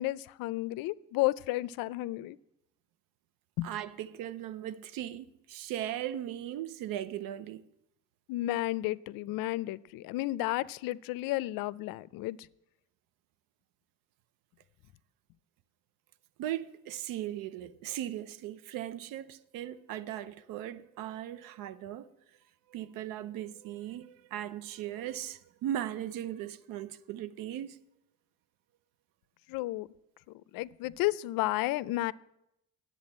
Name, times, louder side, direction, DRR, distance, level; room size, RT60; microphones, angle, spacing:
voice 1, 0.0-2.4 3.6-3.7 8.3-12.4 29.5-29.9 30.3-32.1, left 17 dB, 90° left, 0.5 m, -32 dB
voice 2, 3.6-7.6 16.4-22.1 22.7-27.8, right 12 dB, 90° right, 0.7 m, -38 dB
10.5 x 7.9 x 8.6 m
cardioid pair, 95°, 33 cm